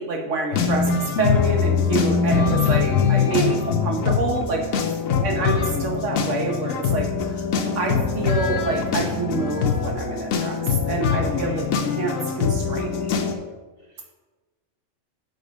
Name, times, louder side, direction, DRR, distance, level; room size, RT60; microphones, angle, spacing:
voice 1, 0.0-4.9 5.2-7.4 7.7-10.6 10.9-11.6 12.0-13.2, right 3 dB, 65° right, 1 dB, 1.4 m, -27 dB
sound 1, 0.5-13.3, left 6 dB, 80° left, 1.2 m, -23 dB
voice 2, 3.4-3.8 5.0-5.4 11.2-11.6 13.8-14.1, left 1 dB, 45° right, -7 dB, 2.5 m, -41 dB
5.8 x 5.3 x 5.2 m, 1.2 s
omnidirectional pair, 1.4 m